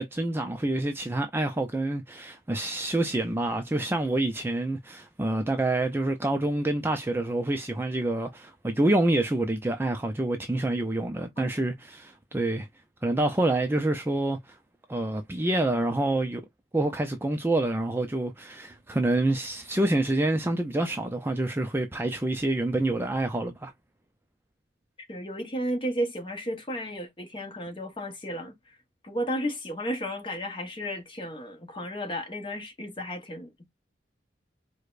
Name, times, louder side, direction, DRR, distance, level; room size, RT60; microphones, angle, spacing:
voice 1, 0.0-12.7 13.0-14.4 14.9-16.4 16.7-23.7, right 2 dB, 10° right, 0.4 m, -27 dB
voice 2, 25.0-28.8 29.0-33.7, equal, 25° left, 0.9 m, -33 dB
4.8 x 2.2 x 2.4 m
head